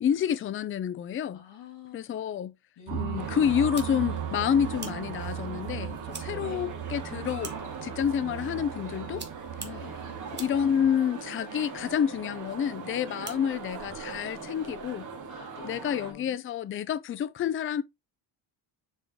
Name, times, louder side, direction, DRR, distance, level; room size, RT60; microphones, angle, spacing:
voice 1, 0.0-1.4 1.9-2.5 2.9-7.5 7.8-9.2 10.4-15.1 15.6-17.8, left 8 dB, 30° left, 0.4 m, -28 dB
voice 2, 1.3-2.0 2.8-3.4 6.3-6.7 9.6-10.0 15.3-16.4, left 10 dB, 75° left, 2.4 m, -46 dB
sound 1, 2.9-10.9, right 10 dB, 80° right, 0.9 m, -38 dB
sound 2, 3.2-16.1, right 4 dB, 45° right, 2.0 m, -41 dB
sound 3, 3.6-15.0, right 5 dB, 25° right, 1.2 m, -49 dB
7.0 x 3.7 x 3.6 m
cardioid pair, 155°, 43 cm